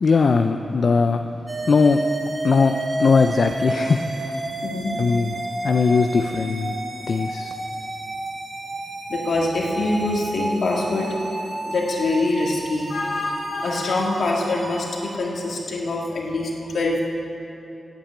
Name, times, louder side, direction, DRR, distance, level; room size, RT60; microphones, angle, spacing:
voice 1, 0.0-1.2 1.7-2.0 2.4-4.4 5.0-5.3 5.6-6.8 7.1-7.5, left 4 dB, 50° left, 6 dB, 0.4 m, -19 dB
sound 1, 1.5-15.1, right 2 dB, 35° right, 0.9 m, -31 dB
voice 2, 4.6-5.0 9.1-11.1 11.6-17.0, left 2 dB, 70° left, -2 dB, 1.9 m, -24 dB
8.8 x 8.3 x 8.4 m, 3.0 s
wide cardioid pair, 130°, 0 cm